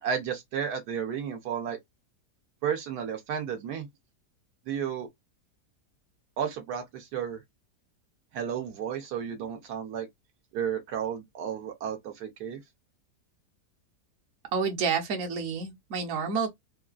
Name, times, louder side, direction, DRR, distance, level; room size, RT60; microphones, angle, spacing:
voice 1, 0.0-1.8 2.6-3.9 4.7-5.1 6.4-7.4 8.3-10.1 10.5-12.6, right 8 dB, 80° right, 1.3 m, -32 dB
voice 2, 14.5-16.5, right 5 dB, 60° right, 1.2 m, -29 dB
3.5 x 2.3 x 2.3 m
omnidirectional pair, 1.7 m